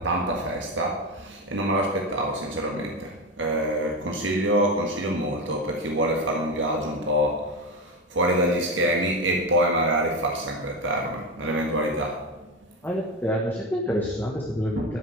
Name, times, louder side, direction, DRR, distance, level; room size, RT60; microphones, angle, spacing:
voice 1, 0.0-12.6 14.7-14.9, right 1 dB, 80° right, 1 dB, 1.6 m, -26 dB
voice 2, 12.8-15.0, equal, 10° left, -2 dB, 1.3 m, -27 dB
12.5 x 6.6 x 9.4 m, 1.1 s
head